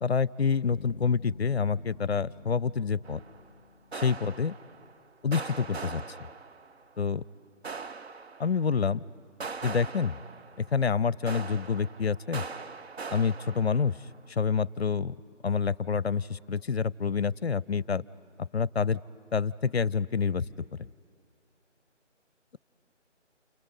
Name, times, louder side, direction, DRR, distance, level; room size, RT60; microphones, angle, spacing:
voice 1, 0.0-3.2 3.9-4.5 5.2-6.0 7.0-7.2 8.4-9.0 9.6-10.2 10.6-12.4 13.1-14.0 14.3-15.2 15.4-18.0 18.4-19.0 19.3-20.5, left 6 dB, 55° left, 24 dB, 0.5 m, -27 dB
sound 1, 0.7-4.7, left 4 dB, 10° left, 1.0 m, -47 dB
sound 2, 3.0-3.5 3.9-5.0 5.3-6.9 7.6-8.8 9.4-10.9 11.3-14.2, right 4 dB, 60° right, 0.7 m, -41 dB
29.5 x 27.5 x 5.3 m, 2.3 s
figure-of-eight pair, 155°, 37 cm